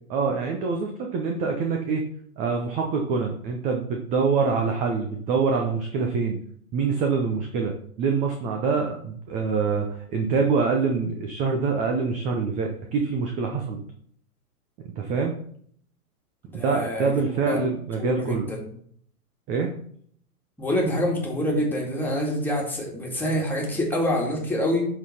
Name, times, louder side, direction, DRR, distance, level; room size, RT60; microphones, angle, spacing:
voice 1, 0.1-2.0 2.4-6.4 6.7-13.8 15.0-15.3 16.5-18.5 19.5-19.7, right 5 dB, 15° right, 2 dB, 0.6 m, -25 dB
voice 2, 16.5-17.1 17.5-17.6 18.0-18.6 20.6-24.8, left 1 dB, 5° left, -2 dB, 2.0 m, -26 dB
11.5 x 3.9 x 4.2 m, 0.63 s
hypercardioid pair, 120°, 46 cm